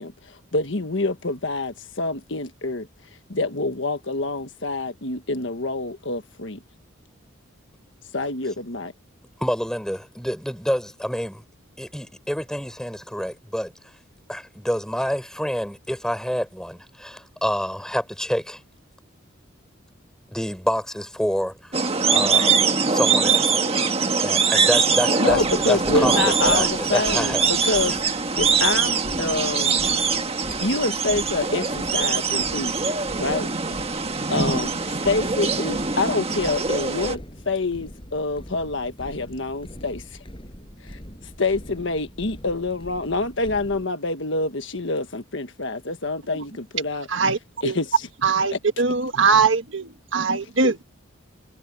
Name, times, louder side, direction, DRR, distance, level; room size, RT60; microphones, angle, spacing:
voice 1, 0.0-2.9 3.3-6.6 8.1-8.9 25.2-28.0 28.4-29.8 30.6-33.5 34.3-37.2 37.4-40.2 40.8-41.0 41.4-48.8 50.4-50.8, left 2 dB, 60° left, 1.5 m, -27 dB
voice 2, 9.4-11.4 11.8-13.7 14.3-18.6 20.3-21.8 22.1-22.5 22.9-23.5 24.2-27.5, equal, 5° left, 6.0 m, -27 dB
sound 1, 21.7-37.1, right 5 dB, 30° right, 1.5 m, -22 dB
sound 2, 25.3-43.8, equal, 25° left, 6.8 m, -42 dB
voice 3, 48.2-50.7, right 4 dB, 65° right, 1.5 m, -21 dB
head